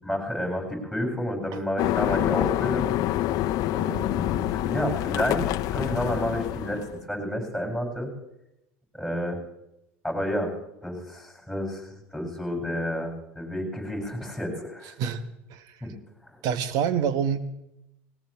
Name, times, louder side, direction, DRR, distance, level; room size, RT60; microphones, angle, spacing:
voice 1, 0.0-2.9 3.7-8.1 8.9-9.4 10.0-10.5 10.8-14.9 15.8-15.9 16.3-16.4, equal, 5° right, 1 dB, 7.5 m, -30 dB
sound 1, 1.8-7.0, left 14 dB, 55° left, 0.7 m, -27 dB
voice 2, 16.4-17.4, right 8 dB, 60° right, 13 dB, 1.1 m, -26 dB
20.0 x 18.5 x 3.5 m, 0.85 s
hypercardioid pair, 85°, 7 cm